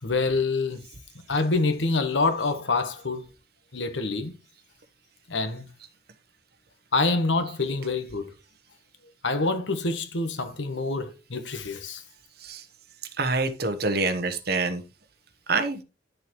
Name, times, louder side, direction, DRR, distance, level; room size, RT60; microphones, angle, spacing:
voice 1, 0.0-0.8 1.3-3.2 3.7-4.3 5.3-5.7 6.9-8.3 9.2-12.0, left 3 dB, 75° left, 1.2 m, -26 dB
voice 2, 13.2-14.8 15.5-15.8, right 3 dB, 55° right, 1.1 m, -26 dB
10.5 x 6.6 x 3.1 m
head